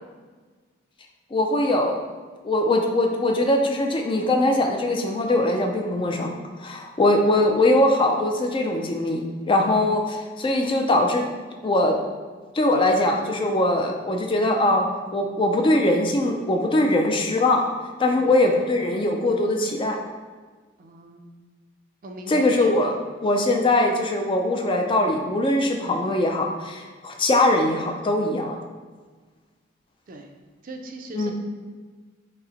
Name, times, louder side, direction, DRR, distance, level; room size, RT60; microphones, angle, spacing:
voice 1, 1.3-2.0 2.4-6.3 6.6-11.3 11.6-12.0 12.5-17.6 18.0-20.0 22.3-28.6 31.1-31.3, left 1 dB, 25° left, 3 dB, 0.3 m, -21 dB
voice 2, 20.8-21.4 22.0-22.9 25.8-26.0 30.1-30.3 30.6-31.3, right 1 dB, 45° right, 3 dB, 0.4 m, -40 dB
5.3 x 2.1 x 3.9 m, 1.4 s
head